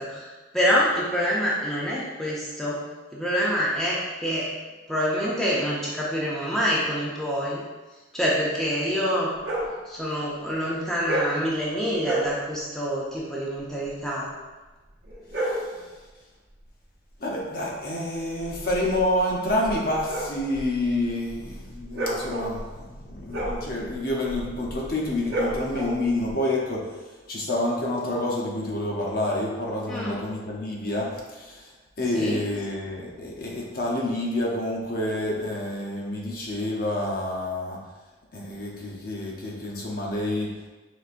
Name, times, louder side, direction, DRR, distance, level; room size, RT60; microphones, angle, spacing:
voice 1, 0.0-2.8 3.1-4.5 4.9-7.6 8.1-9.3 9.9-14.3 29.9-30.2 32.1-32.4, equal, ahead, -7 dB, 0.5 m, -26 dB
sound 1, 9.4-9.8 11.0-11.4 12.0-12.4 15.0-15.7 18.3-26.3, right 1 dB, 60° right, 0.8 m, -31 dB
voice 2, 15.3-15.9 17.2-37.8 38.3-40.5, left 1 dB, 50° left, -2 dB, 0.7 m, -28 dB
4.9 x 3.4 x 2.5 m, 1.2 s
head